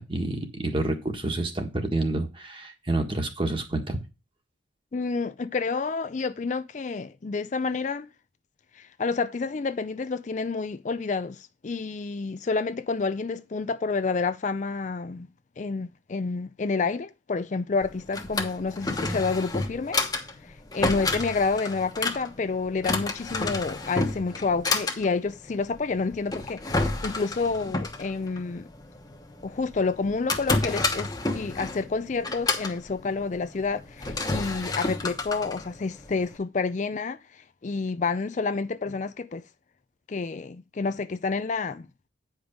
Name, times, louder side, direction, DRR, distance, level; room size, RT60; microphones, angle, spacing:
voice 1, 0.0-4.0, right 2 dB, 25° right, 1.5 m, -28 dB
voice 2, 4.9-8.1 8.8-15.3 15.6-20.0 20.7-28.6 29.4-39.4 40.1-41.9, left 4 dB, 40° left, 0.4 m, -29 dB
Drawer open or close, 17.8-36.4, left 3 dB, 20° left, 1.1 m, -31 dB
9.5 x 5.2 x 5.2 m
head